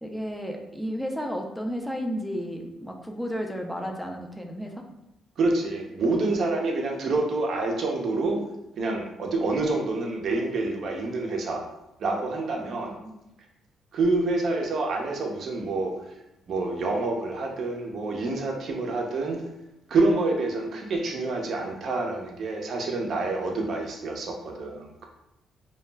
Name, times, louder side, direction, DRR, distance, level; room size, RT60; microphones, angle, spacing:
voice 1, 0.0-4.8 12.7-13.2, equal, ahead, 2 dB, 0.4 m, -33 dB
voice 2, 5.4-8.4 8.8-11.7 12.0-13.0 13.9-16.1 16.5-19.4 19.9-25.0, right 3 dB, 60° right, 1 dB, 0.5 m, -27 dB
2.2 x 2.0 x 3.3 m, 0.88 s
cardioid pair, 90°, 0 cm